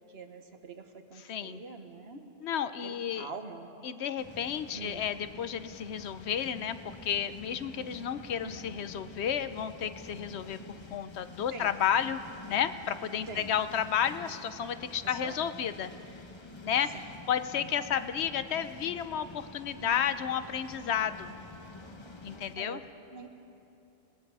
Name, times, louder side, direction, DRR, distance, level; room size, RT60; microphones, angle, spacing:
voice 1, 0.1-2.3 2.8-3.7 4.7-5.0 8.4-8.6 11.5-11.7 13.3-13.5 15.0-15.4 16.9-17.0 19.8-20.1 22.6-22.8 23.1-23.3, right 4 dB, 65° right, 6 dB, 1.5 m, -44 dB
voice 2, 1.3-1.6 2.4-3.3 3.8-10.6 10.9-12.2 12.5-15.9 16.6-17.0 17.3-21.4 22.2-22.8, left 8 dB, 70° left, 12 dB, 1.0 m, -32 dB
sound 1, 4.2-22.5, left 2 dB, 25° left, 1.0 m, -48 dB
30.0 x 19.5 x 4.8 m, 2.9 s
omnidirectional pair, 1.2 m